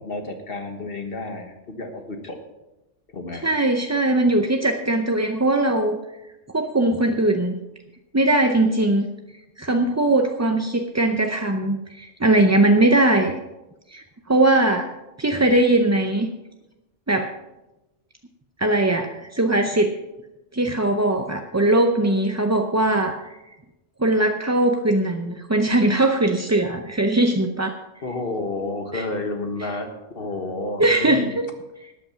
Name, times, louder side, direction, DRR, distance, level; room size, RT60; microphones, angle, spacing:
voice 1, 0.0-2.4 3.1-3.5 28.0-29.9 30.1-31.3, left 2 dB, 50° left, 5 dB, 1.5 m, -30 dB
voice 2, 3.4-6.0 6.5-7.5 8.1-9.1 9.6-13.3 13.9-14.9 15.2-16.3 17.1-17.3 18.6-19.9 20.5-23.2 24.0-27.8 28.9-29.0 30.8-31.5, right 2 dB, 20° right, 4 dB, 0.4 m, -20 dB
13.0 x 8.9 x 5.7 m, 0.99 s
omnidirectional pair, 1.2 m